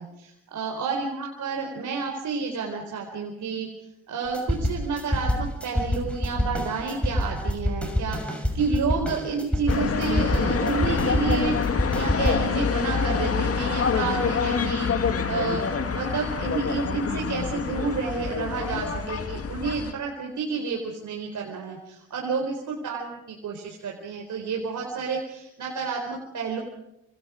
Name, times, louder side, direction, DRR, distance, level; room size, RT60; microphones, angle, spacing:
voice 1, 0.0-3.7 4.1-11.6 11.9-14.9 15.2-15.6 15.9-26.6, right 4 dB, 60° right, 1 dB, 4.3 m, -30 dB
sound 1, 4.3-12.3, left 1 dB, 5° left, 6.4 m, -27 dB
sound 2, 9.7-19.9, left 5 dB, 45° left, 2.3 m, -26 dB
27.0 x 26.5 x 5.1 m, 0.87 s
hypercardioid pair, 50°, 33 cm